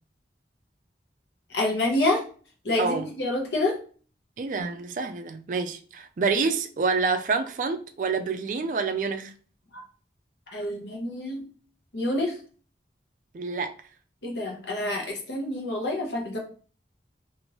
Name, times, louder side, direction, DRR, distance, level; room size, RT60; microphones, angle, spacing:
voice 1, 1.5-2.2 2.6-3.8 9.7-9.8 10.5-11.5 11.9-12.4 14.2-16.4, left 2 dB, 80° left, 0.9 m, -27 dB
voice 2, 2.8-3.1 4.4-9.3 13.3-13.7, right 4 dB, 45° right, 0.3 m, -27 dB
2.9 x 2.5 x 2.9 m
head